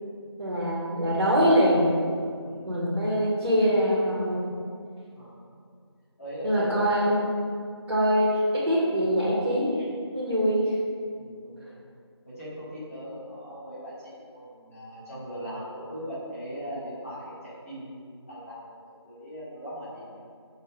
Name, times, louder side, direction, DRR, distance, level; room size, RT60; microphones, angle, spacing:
voice 1, 0.4-1.9 2.6-4.5 6.4-7.2 7.9-10.7, equal, 80° right, -7 dB, 1.2 m, -23 dB
voice 2, 2.4-3.0 5.1-5.6 6.2-6.9 11.1-11.7 12.2-20.1, equal, 30° left, -11 dB, 1.4 m, -40 dB
6.4 x 2.5 x 2.9 m, 2.2 s
figure-of-eight pair, 165°, 15 cm